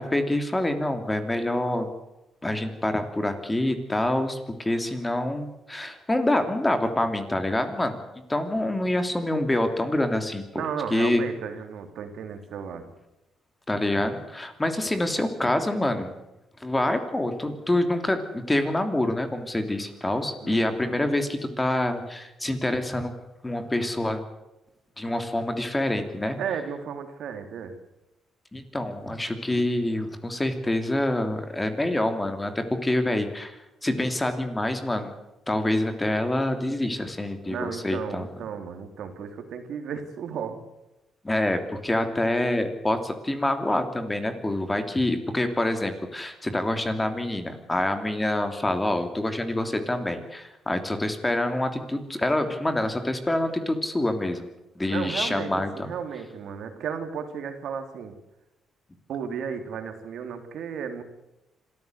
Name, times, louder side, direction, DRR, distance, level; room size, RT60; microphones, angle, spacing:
voice 1, 0.0-1.9 2.4-8.0 8.3-10.4 10.9-11.2 13.7-16.1 16.6-23.1 23.4-24.2 25.0-26.4 28.5-33.6 33.8-35.1 35.5-38.3 41.2-54.5 54.8-55.7, left 1 dB, 15° left, 7 dB, 3.1 m, -26 dB
voice 2, 8.5-8.9 10.5-12.9 20.4-21.0 26.4-27.7 37.5-40.6 54.9-58.1 59.1-61.0, right 7 dB, 70° right, 7 dB, 3.1 m, -34 dB
26.0 x 14.0 x 8.1 m, 0.94 s
cardioid pair, 90°, 0 cm